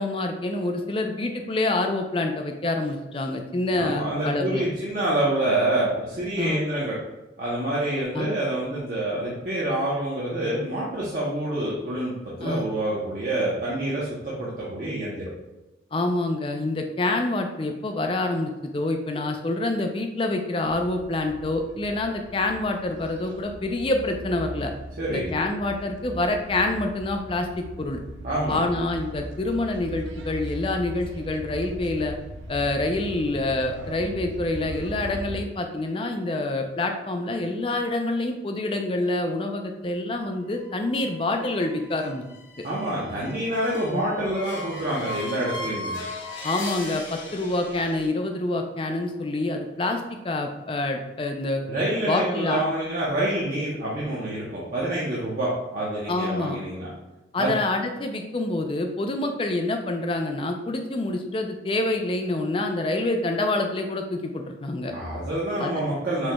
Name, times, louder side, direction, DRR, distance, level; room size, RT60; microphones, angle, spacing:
voice 1, 0.0-4.6 6.4-6.6 8.1-8.4 12.4-12.7 15.9-24.7 25.1-28.0 28.5-32.1 32.5-42.2 42.6-42.7 43.9-44.0 46.4-51.7 52.1-52.6 56.1-56.6 57.3-64.9 65.6-65.7, left 2 dB, 30° left, 5 dB, 0.4 m, -27 dB
voice 2, 3.7-7.0 7.4-12.1 12.4-15.3 25.0-25.3 28.2-28.7 42.6-46.0 51.7-56.9 57.4-57.5 64.9-66.3, right 1 dB, 45° right, -7 dB, 0.8 m, -27 dB
sound 1, 20.6-35.4, right 1 dB, 85° right, 0.5 m, -39 dB
sound 2, 40.4-48.1, left 1 dB, 90° left, 0.9 m, -38 dB
6.1 x 3.1 x 2.3 m, 1.1 s
head